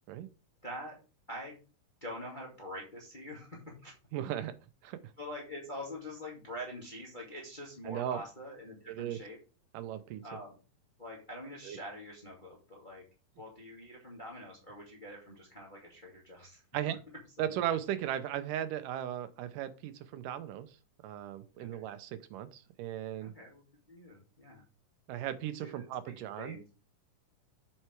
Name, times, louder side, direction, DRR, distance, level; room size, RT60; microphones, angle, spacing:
voice 1, 0.6-1.0 1.3-1.6 2.0-3.9 5.2-9.4 10.2-10.6 11.0-13.0 13.4-16.6 17.4-17.6 21.6-21.8 23.2-23.6 23.9-24.6 25.6-26.7, equal, 15° left, -2 dB, 2.0 m, -45 dB
voice 2, 4.1-4.5 4.8-5.0 7.9-8.2 8.9-9.2 9.7-10.2 11.6-11.8 16.7-17.0 17.4-20.7 21.0-23.3 25.1-26.7, right 11 dB, 75° right, 11 dB, 2.3 m, -36 dB
7.9 x 5.8 x 4.5 m, 0.33 s
omnidirectional pair, 3.9 m